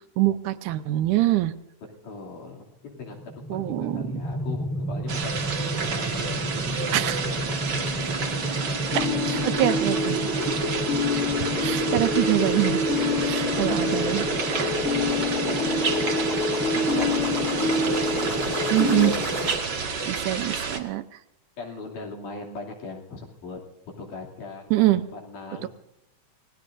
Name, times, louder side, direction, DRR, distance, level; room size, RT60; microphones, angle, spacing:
voice 1, 0.2-1.5 3.5-4.1 6.9-7.2 8.9-10.3 11.1-11.2 11.6-12.8 13.2-14.2 14.5-14.7 16.0-16.2 18.7-19.1 20.1-21.0 24.7-25.0, right 15 dB, 80° right, 11 dB, 2.2 m, -24 dB
voice 2, 2.0-6.4 6.7-7.1 13.5-14.2 16.7-17.9 18.2-19.1 20.1-20.2 21.6-23.6 24.0-25.7, left 3 dB, 75° left, 0 dB, 4.3 m, -40 dB
sound 1, 3.0-19.5, equal, 10° left, 3.0 m, -31 dB
sound 2, 5.1-20.8, right 5 dB, 45° right, 1.6 m, -30 dB
sound 3, 8.9-19.1, left 3 dB, 30° left, 1.8 m, -27 dB
28.5 x 18.0 x 2.6 m, 0.84 s
omnidirectional pair, 3.7 m